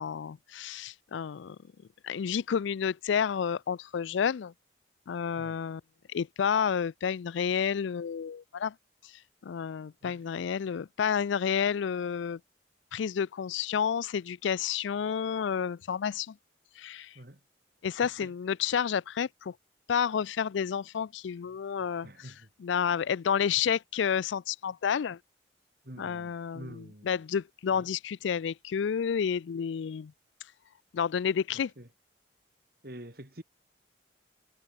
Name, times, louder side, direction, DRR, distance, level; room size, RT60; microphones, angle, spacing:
voice 1, 0.0-1.6 2.0-4.5 5.1-5.8 6.1-8.7 9.4-12.4 12.9-16.3 16.8-17.1 17.8-19.5 19.9-22.1 22.6-25.2 26.0-30.1 30.9-31.7, left 7 dB, 80° left, 0.4 m, -30 dB
voice 2, 18.0-18.3 22.0-22.5 25.8-27.2 27.7-27.9 31.5-31.9 32.8-33.4, right 1 dB, 50° right, 3.3 m, -47 dB
head